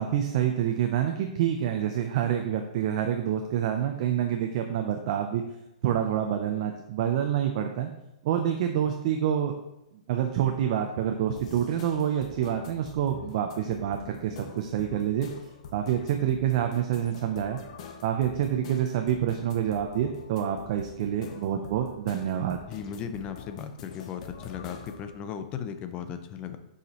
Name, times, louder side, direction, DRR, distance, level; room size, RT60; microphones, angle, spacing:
voice 1, 0.0-5.4 5.8-7.9 8.2-9.5 10.1-15.3 15.7-17.6 18.0-22.6, right 10 dB, 50° right, 5 dB, 0.5 m, -27 dB
sound 1, 11.4-25.1, left 6 dB, 55° left, 0.9 m, -46 dB
voice 2, 22.7-26.6, left 7 dB, 25° left, 9 dB, 0.5 m, -36 dB
6.5 x 4.9 x 3.0 m, 0.91 s
hypercardioid pair, 145°, 4 cm